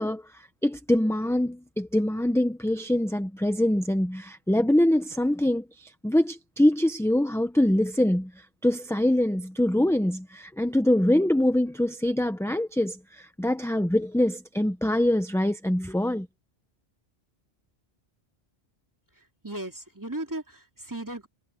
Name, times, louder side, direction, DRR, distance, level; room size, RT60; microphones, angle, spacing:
voice 1, 0.0-16.3, left 1 dB, 5° left, 0.8 m, -24 dB
voice 2, 19.2-21.3, right 1 dB, 15° right, 2.7 m, -36 dB
omnidirectional pair, 1.1 m